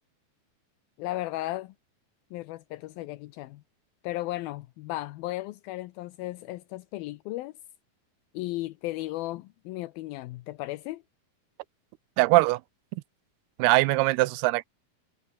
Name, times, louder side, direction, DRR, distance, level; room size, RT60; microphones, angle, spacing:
voice 1, 1.0-1.7 2.3-3.6 4.0-7.5 8.3-11.0, left 17 dB, 80° left, 2.5 m, -35 dB
voice 2, 12.2-12.6 13.6-14.7, right 20 dB, 85° right, 2.7 m, -21 dB
omnidirectional pair, 4.5 m